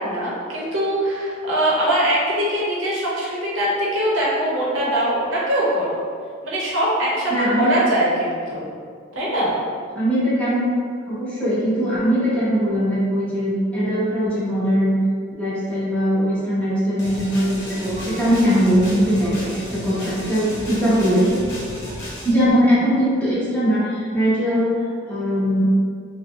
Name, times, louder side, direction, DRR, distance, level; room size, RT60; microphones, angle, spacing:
voice 1, 0.0-6.0 6.4-8.6 9.1-9.6, right 1 dB, 80° right, -6 dB, 0.7 m, -22 dB
voice 2, 7.3-7.8 9.9-10.7 11.1-15.0 15.4-21.4 22.2-24.8 25.1-25.7, equal, 5° left, -11 dB, 0.9 m, -20 dB
sound 1, 17.0-22.3, equal, 60° left, 0.7 m, -34 dB
2.6 x 2.0 x 3.4 m, 2.1 s
head